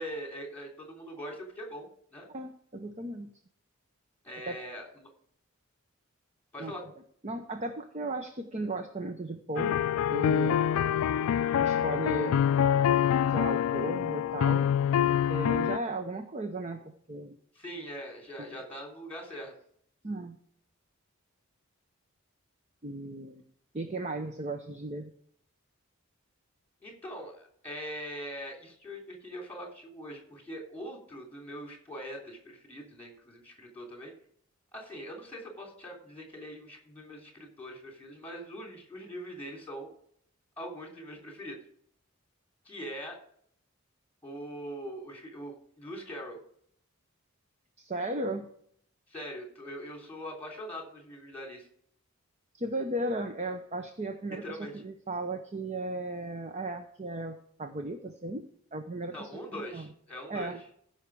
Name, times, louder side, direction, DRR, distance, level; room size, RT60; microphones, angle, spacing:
voice 1, 0.0-2.3 4.2-5.1 6.5-6.8 17.5-19.5 26.8-34.1 34.7-39.9 40.6-41.6 42.6-43.2 44.2-46.4 49.1-51.7 54.4-54.8 59.1-60.5, equal, 10° left, 1 dB, 3.2 m, -42 dB
voice 2, 2.3-3.3 4.5-4.6 6.6-6.7 7.2-9.8 10.1-10.6 11.6-12.4 13.3-14.7 15.3-17.4 18.4-18.5 20.0-20.4 22.8-23.4 23.7-25.1 47.8-48.5 52.5-58.4 58.7-59.9 60.3-60.6, right 2 dB, 30° right, 6 dB, 0.8 m, -36 dB
sound 1, 9.6-15.8, left 9 dB, 80° left, 0.3 m, -26 dB
15.0 x 5.8 x 4.8 m, 0.64 s
head